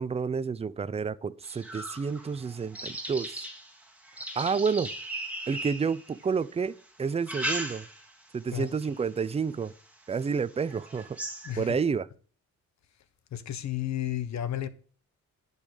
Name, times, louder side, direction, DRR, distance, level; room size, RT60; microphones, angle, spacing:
voice 1, 0.0-3.5 4.4-4.9 5.5-7.9 8.3-9.7 10.1-11.2 11.6-12.1, right 5 dB, 20° right, 0.5 m, -30 dB
sound 1, 1.4-6.4 7.0-8.2 8.6-9.0 9.6-9.7 10.2-10.3 10.6-11.7, right 1 dB, 5° right, 2.8 m, -38 dB
voice 2, 11.4-11.8 13.3-14.7, left 11 dB, 65° left, 1.2 m, -32 dB
10.5 x 5.4 x 6.4 m
cardioid pair, 90°, 30 cm